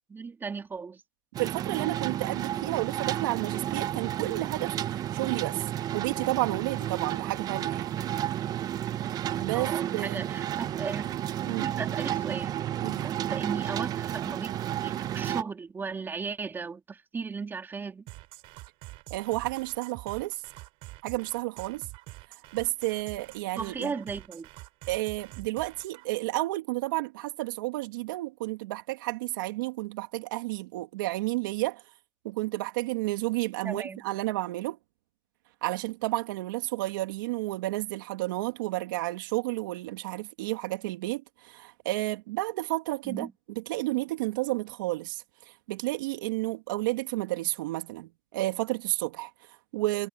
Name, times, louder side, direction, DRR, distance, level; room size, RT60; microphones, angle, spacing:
voice 1, 0.1-1.0 9.5-11.0 11.6-12.6 13.0-14.5 14.8-18.0 23.5-24.5 33.6-34.0 43.0-43.3, right 5 dB, 20° right, 3.4 m, -36 dB
sound 1, 1.3-15.4, right 11 dB, 35° right, 0.9 m, -32 dB
voice 2, 1.4-4.8 5.1-5.6 5.9-7.9 9.4-10.2 11.4-11.7 12.8-13.1 19.1-20.4 21.0-21.9 22.5-23.9 24.9-31.8 32.2-34.8 35.6-43.3 43.6-50.1, right 19 dB, 75° right, 2.7 m, -31 dB
sound 2, 18.1-26.1, right 21 dB, 55° right, 6.5 m, -46 dB
supercardioid pair, 115°, 11 cm